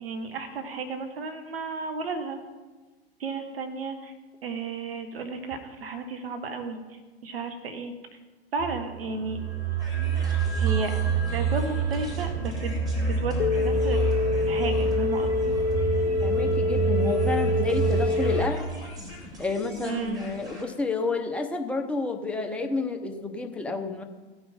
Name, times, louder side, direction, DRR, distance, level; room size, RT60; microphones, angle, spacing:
voice 1, 0.0-2.4 3.2-4.1 4.4-6.8 7.2-7.9 8.5-9.4 9.9-10.1 10.6-11.0 11.3-14.0 14.4-15.5 19.8-20.2, right 4 dB, 65° right, 7 dB, 1.7 m, -33 dB
sound 1, 8.6-18.4, right 5 dB, 80° right, 1.6 m, -28 dB
sound 2, 9.8-20.6, equal, 10° right, 2.6 m, -43 dB
sound 3, 13.4-18.4, left 3 dB, 55° left, 0.7 m, -26 dB
voice 2, 16.2-18.6 19.4-24.0, left 3 dB, 5° left, 4 dB, 0.9 m, -30 dB
16.5 x 5.9 x 5.3 m, 1.2 s
figure-of-eight pair, 100°, 32 cm